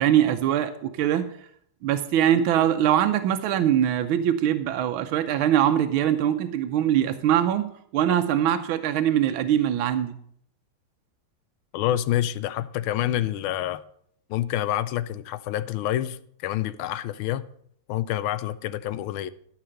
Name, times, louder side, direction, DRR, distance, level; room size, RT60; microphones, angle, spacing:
voice 1, 0.0-1.4 1.8-10.2, right 10 dB, 85° right, 1.5 m, -22 dB
voice 2, 11.7-13.8 14.3-17.5 17.9-19.3, left 12 dB, 85° left, 1.4 m, -27 dB
12.5 x 5.8 x 6.5 m
omnidirectional pair, 2.2 m